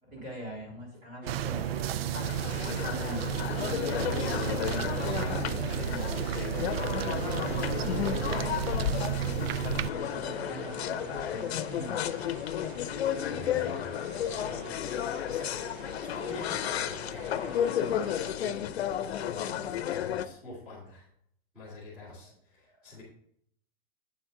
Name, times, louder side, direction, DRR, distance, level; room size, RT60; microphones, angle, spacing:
voice 1, 0.0-2.1 2.6-4.1 4.6-9.2 9.9-12.2 22.2-22.3 22.8-23.0, right 1 dB, 30° right, -2 dB, 3.0 m, -43 dB
sound 1, 1.2-18.3, right 6 dB, 55° right, 0.9 m, -47 dB
sound 2, 1.3-9.9, right 10 dB, 70° right, 0.4 m, -32 dB
sound 3, 2.1-20.2, left 10 dB, 80° left, 0.7 m, -32 dB
voice 2, 2.3-3.3 13.2-13.9 14.3-14.8 15.3-21.1 21.5-23.0, left 2 dB, 5° right, -10 dB, 3.0 m, -46 dB
8.9 x 7.4 x 3.8 m, 0.67 s
supercardioid pair, 175°, 31 cm